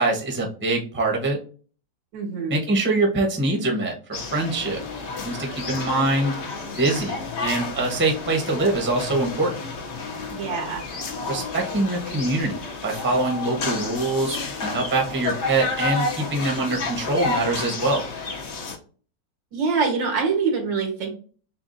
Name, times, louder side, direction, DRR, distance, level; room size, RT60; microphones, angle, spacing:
voice 1, 0.0-1.4 2.5-4.8 5.2-6.4 6.8-9.5 11.3-12.6 12.8-18.0, right 2 dB, 10° right, 0 dB, 0.7 m, -24 dB
voice 2, 2.1-2.6 10.3-10.8 19.5-21.1, right 5 dB, 90° right, 2 dB, 2.2 m, -24 dB
sound 1, 4.1-18.8, left 3 dB, 50° left, 0.9 m, -31 dB
6.8 x 2.4 x 2.6 m, 0.40 s
omnidirectional pair, 2.0 m